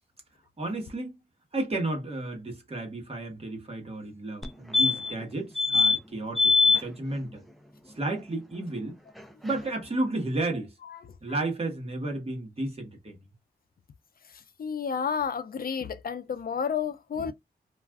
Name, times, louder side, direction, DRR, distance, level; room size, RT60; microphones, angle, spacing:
voice 1, 0.6-1.2 1.5-7.4 7.9-9.0 9.4-10.7 11.2-13.2, right 2 dB, 35° right, 1.1 m, -32 dB
sound 1, 4.4-4.5 4.7-5.2 5.6-6.0 6.4-6.8 9.2-9.3 9.5-9.6, left 4 dB, ahead, 0.4 m, -22 dB
voice 2, 14.3-17.3, left 7 dB, 60° left, 0.4 m, -31 dB
2.4 x 2.3 x 3.4 m
wide cardioid pair, 130°, 17 cm